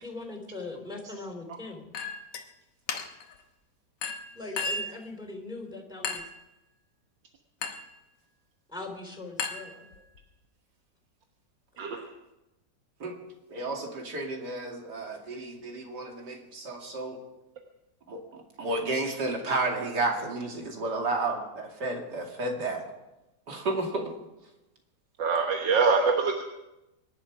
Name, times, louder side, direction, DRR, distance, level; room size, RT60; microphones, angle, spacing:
voice 1, 0.0-1.9 4.3-6.2 8.7-9.9, left 2 dB, ahead, 3 dB, 3.5 m, -40 dB
Chink clink, 1.9-2.5 2.9-3.3 4.0-5.0 6.0-6.4 7.6-8.0 9.4-10.2, left 4 dB, 70° left, 1.8 m, -35 dB
voice 2, 13.5-17.2 18.1-18.2 18.6-22.8 23.5-24.1, right 2 dB, 65° right, 1 dB, 3.0 m, -32 dB
voice 3, 25.2-26.4, right 4 dB, 85° right, 3 dB, 1.9 m, -24 dB
24.5 x 11.5 x 4.8 m, 0.97 s
omnidirectional pair, 1.9 m